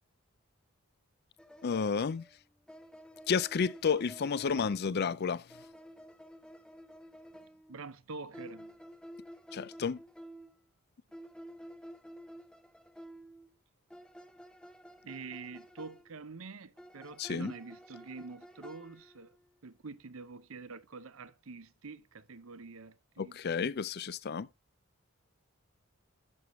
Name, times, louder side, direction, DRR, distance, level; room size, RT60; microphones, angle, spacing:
sound 1, 1.4-5.0 5.5-7.8 8.3-10.6 11.1-13.5 13.9-16.1 16.8-19.5, equal, 5° left, 0.7 m, -52 dB
voice 1, 1.6-2.3 3.3-5.4 9.5-10.0 17.2-17.5 23.2-24.5, left 6 dB, 50° left, 0.4 m, -31 dB
voice 2, 7.4-8.7 15.1-19.3 19.6-23.4, right 4 dB, 70° right, 0.7 m, -46 dB
11.0 x 6.6 x 3.1 m
head